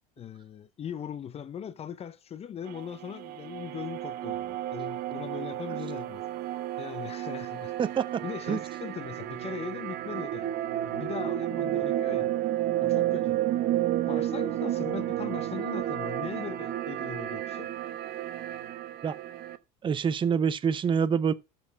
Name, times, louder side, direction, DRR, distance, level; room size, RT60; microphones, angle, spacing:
voice 1, 0.2-6.2 6.5-7.7 8.2-10.5 10.8-12.3 12.8-13.4 14.1-17.7, left 8 dB, 30° left, 0.7 m, -40 dB
sound 1, 2.7-19.6, right 13 dB, 50° right, 1.1 m, -31 dB
voice 2, 7.8-8.2 8.5-8.6 19.0-19.2 19.8-21.3, right 7 dB, 25° right, 0.7 m, -26 dB
13.0 x 4.4 x 4.6 m
supercardioid pair, 95°, 19 cm